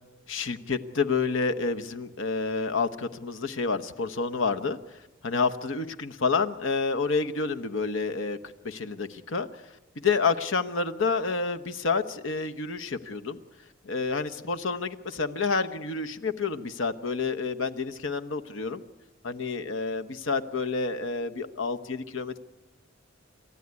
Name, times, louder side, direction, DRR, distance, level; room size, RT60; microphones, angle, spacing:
voice 1, 0.3-4.8 5.2-8.4 8.6-9.5 10.0-13.4 13.8-18.8 19.2-22.4, left 4 dB, 65° left, 8 dB, 1.0 m, -29 dB
28.5 x 14.0 x 9.6 m, 1.1 s
head